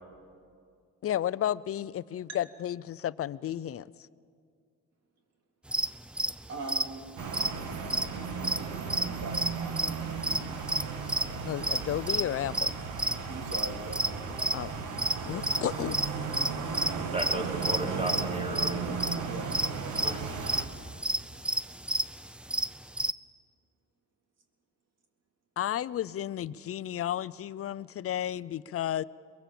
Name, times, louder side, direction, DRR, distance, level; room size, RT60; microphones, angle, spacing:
voice 1, 1.0-3.9 11.4-12.7 14.5-14.7 15.2-16.0 16.3-16.5 25.6-29.0, left 11 dB, 50° left, 19 dB, 0.5 m, -32 dB
sound 1, 5.7-9.1 9.3-14.6 15.0-17.4 17.6-17.8 18.1-18.2 18.6-23.1, right 1 dB, 5° right, 0.5 m, -30 dB
voice 2, 6.5-7.0 8.4-10.6 13.3-14.1 19.2-19.7, right 3 dB, 60° right, 3 dB, 3.6 m, -42 dB
sound 2, 7.2-20.7, right 5 dB, 85° right, 2.1 m, -35 dB
voice 3, 17.1-19.0 20.0-20.3, right 1 dB, 20° right, 0 dB, 4.0 m, -35 dB
23.0 x 21.5 x 7.6 m, 2.3 s
cardioid pair, 90°, 30 cm